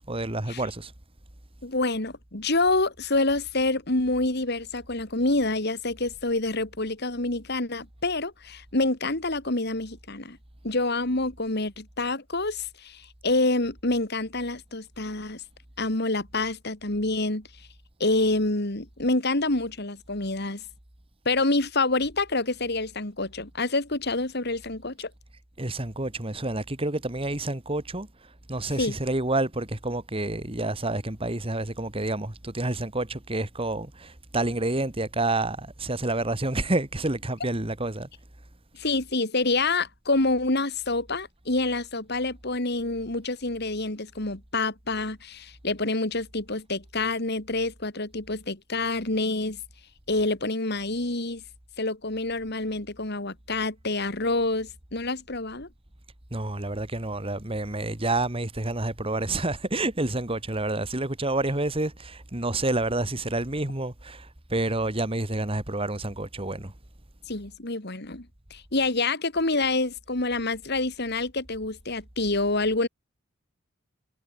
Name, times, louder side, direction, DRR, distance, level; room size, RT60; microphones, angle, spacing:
voice 1, 0.1-0.9 25.6-28.1 28.5-38.1 56.3-66.7, right 2 dB, 30° right, 2.1 m, -29 dB
voice 2, 1.6-10.4 10.6-15.4 15.8-17.5 18.0-20.6 21.2-25.1 28.8-29.0 38.8-49.6 50.1-51.4 51.8-55.7 67.3-72.9, left 2 dB, 55° left, 2.9 m, -27 dB
head